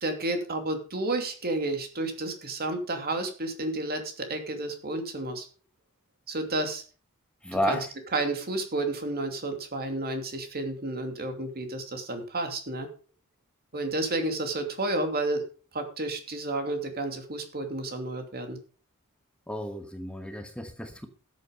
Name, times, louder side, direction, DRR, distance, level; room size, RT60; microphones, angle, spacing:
voice 1, 0.0-5.5 6.3-6.8 7.6-7.9 8.1-12.9 13.7-15.4 15.7-18.6, right 2 dB, 45° right, 5 dB, 2.7 m, -31 dB
voice 2, 7.4-7.9 19.5-21.1, left 1 dB, 5° left, 6 dB, 1.2 m, -31 dB
13.0 x 8.4 x 5.2 m, 0.37 s
head